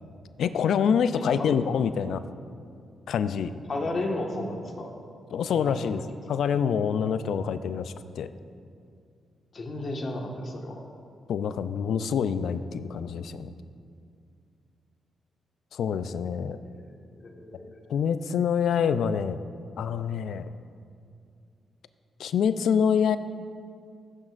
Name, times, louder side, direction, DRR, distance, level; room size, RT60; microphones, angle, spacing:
voice 1, 0.4-2.2 3.1-3.5 5.3-6.0 6.3-8.3 11.3-13.5 15.7-16.6 17.9-19.4 19.8-20.5 22.2-23.2, left 7 dB, 75° left, 13 dB, 0.4 m, -26 dB
voice 2, 1.1-1.6 3.7-4.9 5.5-6.2 9.5-10.8 16.7-17.8, left 2 dB, 50° left, 1 dB, 1.6 m, -34 dB
14.5 x 8.9 x 2.5 m, 2.4 s
hypercardioid pair, 45°, 0 cm